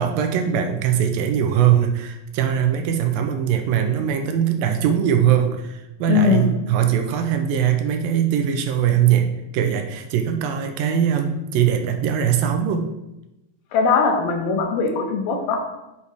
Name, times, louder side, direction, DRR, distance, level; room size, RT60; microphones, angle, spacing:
voice 1, 0.0-12.9, right 9 dB, 85° right, 5 dB, 2.2 m, -21 dB
voice 2, 6.1-6.5 13.7-15.6, left 5 dB, 85° left, 3 dB, 2.9 m, -20 dB
6.9 x 4.2 x 4.8 m, 0.94 s
omnidirectional pair, 4.2 m